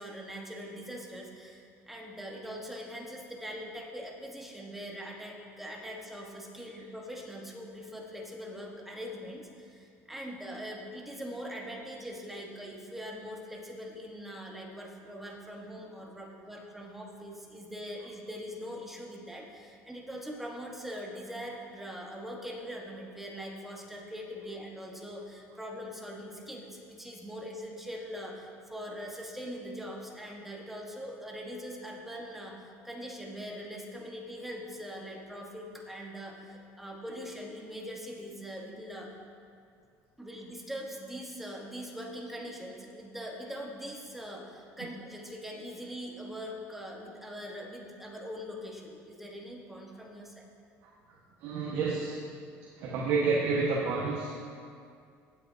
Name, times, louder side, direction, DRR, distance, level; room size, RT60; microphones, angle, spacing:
voice 1, 0.0-39.1 40.2-50.4, equal, 5° right, -1 dB, 1.3 m, -42 dB
voice 2, 51.4-52.2 52.8-54.4, right 4 dB, 65° right, -3 dB, 1.3 m, -29 dB
16.5 x 8.0 x 2.7 m, 2.3 s
cardioid pair, 145°, 6 cm